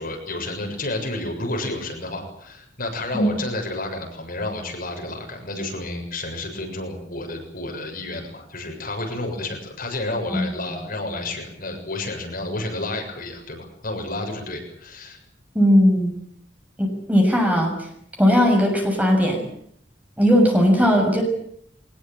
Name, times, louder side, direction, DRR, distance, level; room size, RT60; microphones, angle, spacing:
voice 1, 0.0-15.2, left 2 dB, 50° left, 2 dB, 7.1 m, -30 dB
voice 2, 15.5-16.1 16.8-17.7 18.2-19.4 20.2-21.2, equal, 10° right, 1 dB, 6.8 m, -18 dB
23.5 x 20.5 x 9.1 m, 0.69 s
head